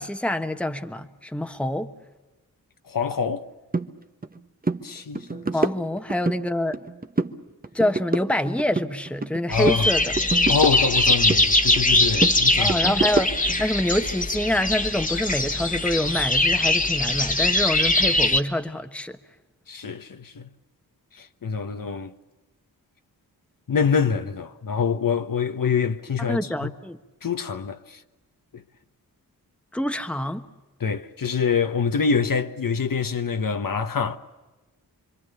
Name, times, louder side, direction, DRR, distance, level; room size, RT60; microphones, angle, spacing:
voice 1, 0.0-1.9 5.5-6.8 7.7-10.2 12.6-13.3 13.6-19.2 26.3-27.0 29.7-30.5, left 1 dB, 5° left, 1.3 m, -26 dB
voice 2, 2.8-3.5 4.8-5.4 9.5-9.9 10.5-12.8 19.7-20.5 21.1-22.1 23.7-26.7 27.2-28.0 28.5-28.6 30.8-34.2, left 6 dB, 60° left, 1.3 m, -25 dB
sound 1, 3.7-3.9 4.2-4.4 4.6-4.8 5.2-6.4 6.7-7.4 7.6-9.4 9.7-11.4 11.8-13.6, right 3 dB, 25° right, 1.1 m, -27 dB
sound 2, 9.5-18.4, left 2 dB, 20° left, 1.5 m, -22 dB
27.0 x 24.5 x 7.0 m
wide cardioid pair, 80°, 37 cm